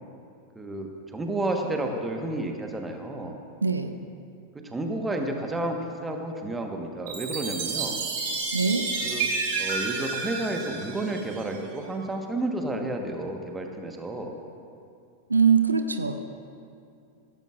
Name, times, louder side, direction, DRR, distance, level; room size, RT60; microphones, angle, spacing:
voice 1, 0.5-3.4 4.5-8.0 9.0-9.3 9.6-14.4, right 2 dB, 10° right, 3 dB, 1.3 m, -31 dB
voice 2, 3.6-4.0 8.5-8.9 15.3-16.2, right 5 dB, 80° right, 8 dB, 0.6 m, -22 dB
Chime, 7.1-11.6, right 4 dB, 55° right, 2.2 m, -30 dB
16.0 x 15.0 x 2.5 m, 2.5 s
figure-of-eight pair, 90°, 0 cm